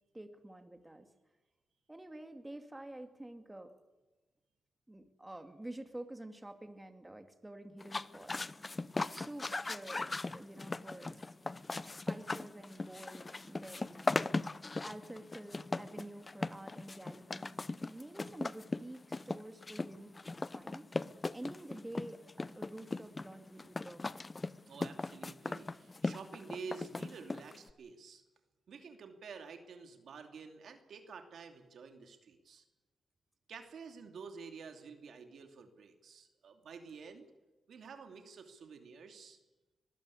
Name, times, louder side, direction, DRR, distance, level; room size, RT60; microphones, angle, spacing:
voice 1, 0.1-1.1 1.9-3.7 4.9-8.6 9.1-11.3 12.1-20.9 21.3-24.2, right 1 dB, 15° right, 7 dB, 2.4 m, -49 dB
sound 1, 7.8-27.7, left 3 dB, 30° left, 0.7 m, -39 dB
voice 2, 24.7-28.2 28.7-32.6 33.5-37.3 37.7-39.4, right 5 dB, 75° right, 6 dB, 2.7 m, -50 dB
22.5 x 15.5 x 8.5 m, 1.2 s
cardioid pair, 75°, 0 cm